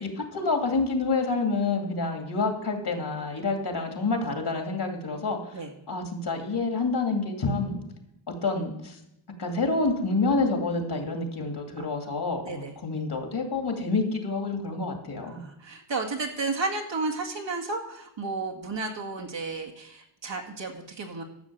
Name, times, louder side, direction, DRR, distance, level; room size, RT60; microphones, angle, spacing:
voice 1, 0.0-5.4 5.9-7.8 8.4-9.0 9.4-15.4, left 3 dB, 55° left, 3 dB, 2.7 m, -28 dB
voice 2, 15.2-21.2, right 3 dB, 60° right, 1 dB, 2.1 m, -33 dB
12.0 x 6.5 x 7.6 m, 0.80 s
cardioid pair, 80°, 49 cm